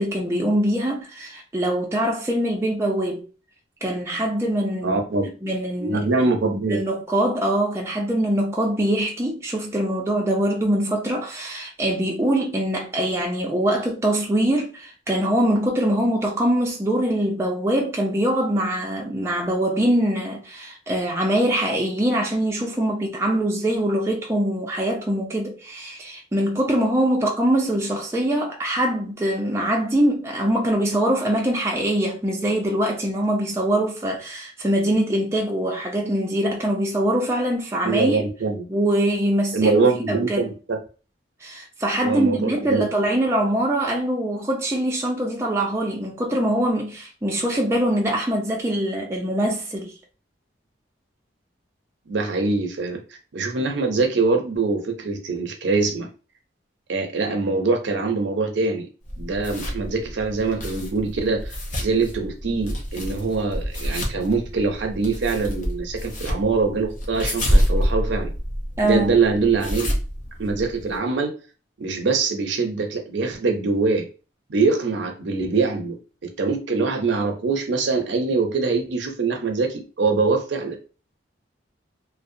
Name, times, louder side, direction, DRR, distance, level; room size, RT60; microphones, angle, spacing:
voice 1, 0.0-3.3 3.8-5.0 5.4-6.0 6.7-38.2 38.7-39.8 40.1-40.5 41.4-49.9 68.8-69.1, right 1 dB, 15° right, 0.4 m, -23 dB
voice 2, 4.8-5.3 5.8-6.8 37.8-38.6 39.5-40.8 42.0-42.9 52.1-53.0 53.3-56.1 56.9-58.9 59.2-61.5 61.8-68.3 68.8-70.0 70.4-71.3 71.8-74.1 74.5-80.8, right 4 dB, 65° right, 0.5 m, -23 dB
sound 1, 59.0-71.0, equal, 40° left, 0.6 m, -27 dB
2.6 x 2.0 x 2.5 m
head